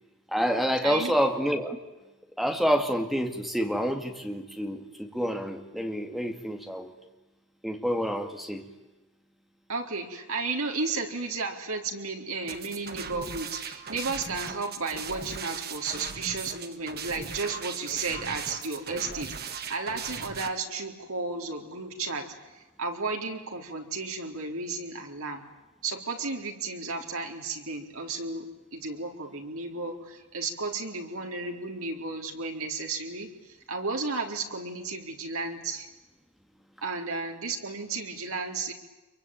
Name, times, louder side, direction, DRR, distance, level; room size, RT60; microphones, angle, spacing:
voice 1, 0.3-1.8 2.4-6.9 7.6-8.7, equal, ahead, 4 dB, 2.1 m, -28 dB
voice 2, 0.8-1.1 9.7-25.4 25.8-28.5 28.7-33.3 33.7-35.9 36.8-38.7, right 3 dB, 70° right, 2 dB, 4.0 m, -33 dB
sound 1, 12.5-20.5, right 6 dB, 45° right, 1.8 m, -38 dB
26.5 x 23.5 x 9.1 m, 1.1 s
head